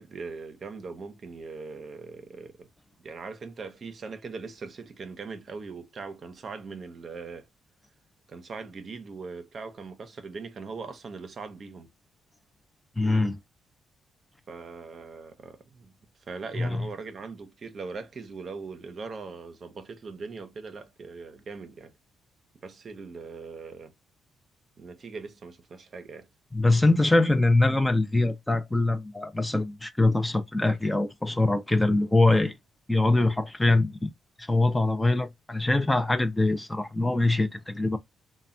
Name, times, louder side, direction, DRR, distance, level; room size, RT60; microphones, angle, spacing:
voice 1, 0.0-2.7 3.0-7.5 8.3-11.9 14.5-15.9 16.3-21.9 22.6-23.9 24.8-26.3, right 4 dB, 45° right, 0.7 m, -40 dB
voice 2, 13.0-13.4 16.6-16.9 26.5-32.5 32.9-34.1 34.4-38.0, left 2 dB, 10° left, 0.5 m, -23 dB
3.1 x 2.1 x 2.4 m
cardioid pair, 90°, 0 cm